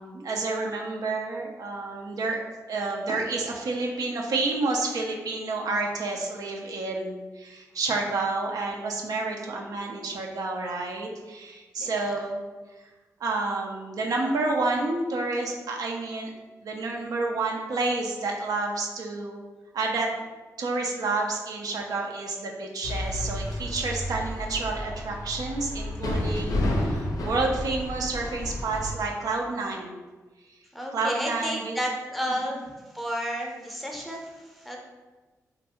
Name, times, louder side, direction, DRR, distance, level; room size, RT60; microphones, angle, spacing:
voice 1, 0.0-2.4 2.7-12.4 13.2-16.3 16.6-19.4 19.7-20.1 20.6-30.0 30.9-31.7 32.4-32.5, right 3 dB, 75° right, 0 dB, 0.4 m, -29 dB
sound 1, 22.8-28.9, left 1 dB, 70° left, 0.4 m, -31 dB
voice 2, 30.7-32.6 32.9-34.8, equal, ahead, -1 dB, 0.6 m, -32 dB
2.4 x 2.2 x 2.8 m, 1.3 s
cardioid pair, 50°, 6 cm